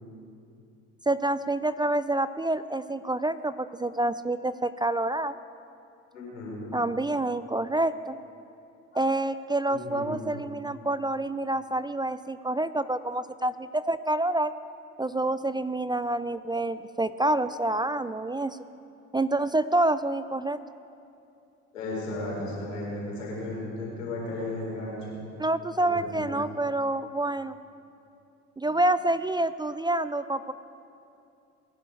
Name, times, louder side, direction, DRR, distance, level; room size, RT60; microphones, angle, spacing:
voice 1, 1.1-5.4 6.7-8.2 8.9-14.5 15.0-18.6 19.1-20.6 25.4-27.6 28.6-30.5, right 2 dB, 10° right, 14 dB, 0.4 m, -27 dB
voice 2, 6.1-6.7 8.9-9.0 9.7-10.2 21.7-25.1 25.8-26.4 28.6-28.8, left 2 dB, 90° left, -5 dB, 4.7 m, -35 dB
21.0 x 11.0 x 4.8 m, 2.6 s
hypercardioid pair, 60°, 38 cm